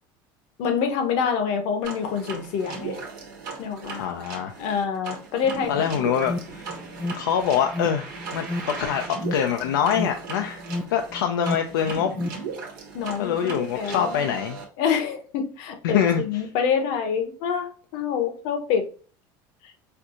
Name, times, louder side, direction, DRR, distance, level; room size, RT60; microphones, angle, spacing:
voice 1, 0.6-3.0 3.6-4.0 4.6-5.7 12.9-14.4 14.8-18.9, left 7 dB, 70° left, 6 dB, 0.9 m, -26 dB
sound 1, 1.8-14.6, right 4 dB, 85° right, 1.1 m, -37 dB
voice 2, 4.0-4.6 5.7-6.8 7.2-10.6 10.9-12.1 13.2-14.6 15.8-16.2, left 8 dB, 90° left, 4 dB, 0.4 m, -25 dB
Alarm, 5.6-12.3, left 2 dB, 5° left, 0.3 m, -33 dB
4.4 x 2.4 x 2.5 m, 0.40 s
supercardioid pair, 95°, 11 cm